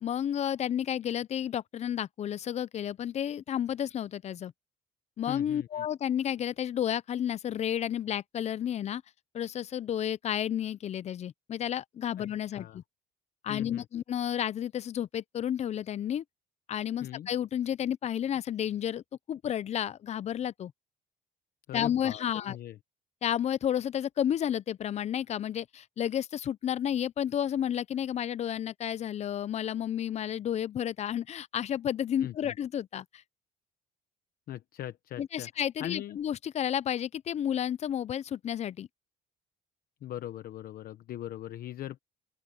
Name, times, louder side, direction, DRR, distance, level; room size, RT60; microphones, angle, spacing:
voice 1, 0.0-4.5 5.2-9.0 9.3-12.8 13.4-16.2 16.7-20.7 21.7-22.6 23.2-33.0 35.2-38.9, left 10 dB, 40° left, 0.5 m, -31 dB
voice 2, 5.3-5.9 12.5-12.8 13.5-13.8 17.0-17.3 21.7-22.8 32.2-32.5 34.5-35.5 35.8-36.2 40.0-42.0, left 12 dB, 60° left, 1.0 m, -40 dB
open air
cardioid pair, 110°, 17 cm